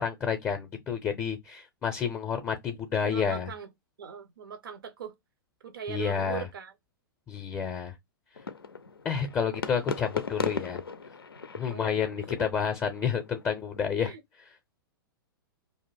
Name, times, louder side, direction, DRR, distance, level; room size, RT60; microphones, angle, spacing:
voice 1, 0.0-3.5 5.9-6.5 7.3-7.9 9.0-10.8 11.6-14.1, left 7 dB, 20° left, 0.5 m, -30 dB
voice 2, 3.0-3.7 4.0-5.2 5.6-6.7 9.4-9.7 11.7-12.1 12.4-12.5 14.0-14.2, right 8 dB, 70° right, 0.5 m, -40 dB
sound 1, 8.4-14.1, left 4 dB, 85° left, 0.4 m, -38 dB
2.5 x 2.0 x 3.2 m
figure-of-eight pair, 105°, 12 cm